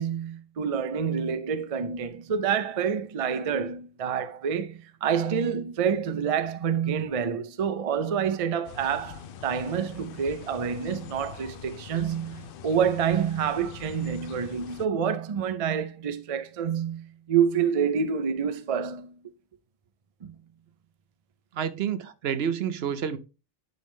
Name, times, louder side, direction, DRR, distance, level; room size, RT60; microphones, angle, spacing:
voice 1, 0.0-19.1 20.2-20.3, right 7 dB, 40° right, 0.5 m, -27 dB
sound 1, 8.6-14.9, left 8 dB, 65° left, 0.7 m, -44 dB
voice 2, 21.5-23.2, right 8 dB, 70° right, 0.9 m, -29 dB
10.0 x 3.5 x 3.1 m
omnidirectional pair, 1.1 m